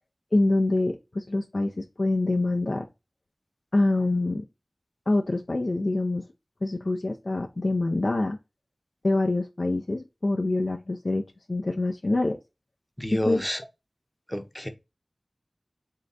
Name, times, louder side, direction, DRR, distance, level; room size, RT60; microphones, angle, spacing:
voice 1, 0.3-2.8 3.7-4.4 5.1-6.3 6.6-8.4 9.0-12.4 13.1-13.4, left 2 dB, 65° left, 0.5 m, -25 dB
voice 2, 13.0-13.6 14.3-14.7, equal, 10° left, 0.7 m, -30 dB
3.7 x 3.4 x 3.9 m
wide cardioid pair, 50°, 0 cm